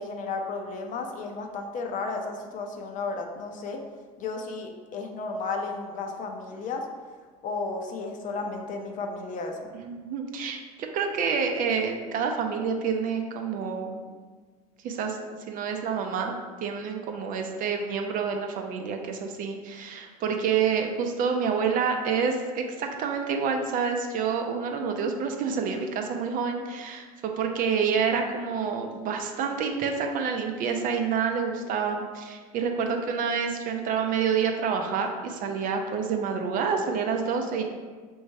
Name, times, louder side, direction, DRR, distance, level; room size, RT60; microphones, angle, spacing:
voice 1, 0.0-3.8 4.2-6.9 7.4-9.7, left 3 dB, 45° left, 3 dB, 0.6 m, -33 dB
voice 2, 9.7-10.6 10.9-14.0 14.8-15.2 15.5-16.3 16.6-37.6, right 6 dB, 45° right, 4 dB, 0.6 m, -28 dB
3.4 x 3.1 x 4.4 m, 1.5 s
hypercardioid pair, 85°, 19 cm